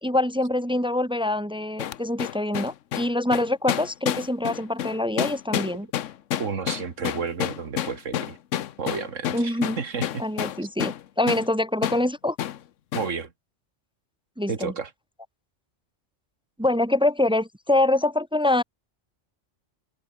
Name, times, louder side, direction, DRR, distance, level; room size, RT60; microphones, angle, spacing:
voice 1, 0.0-5.9 9.3-9.8 10.2-12.4 14.4-14.7 16.6-18.6, left 1 dB, 5° right, 0.4 m, -25 dB
sound 1, 1.8-11.0 11.3-11.5 11.8-12.0 12.4-12.6 12.9-13.1, left 11 dB, 90° left, 1.1 m, -29 dB
voice 2, 6.4-8.4 8.8-10.2 12.9-13.3 14.5-14.9, right 5 dB, 90° right, 2.2 m, -31 dB
open air
omnidirectional pair, 1.3 m